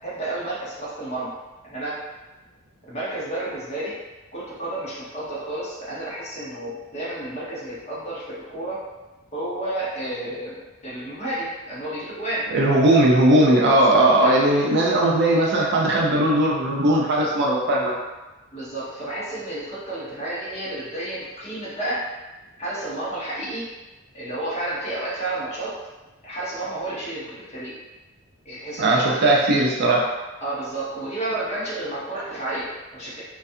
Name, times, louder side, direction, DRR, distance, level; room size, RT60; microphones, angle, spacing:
voice 1, 0.0-1.3 1.6-2.0 2.9-4.0 4.3-8.9 9.3-12.5 13.8-14.4 18.5-22.0 22.6-23.7 24.1-25.8 26.2-27.8 28.4-29.2 30.4-33.2, right 1 dB, 30° left, -8 dB, 0.8 m, -31 dB
voice 2, 12.5-17.9 28.8-30.1, right 1 dB, 50° right, -2 dB, 0.4 m, -18 dB
2.4 x 2.3 x 2.6 m, 1.1 s
head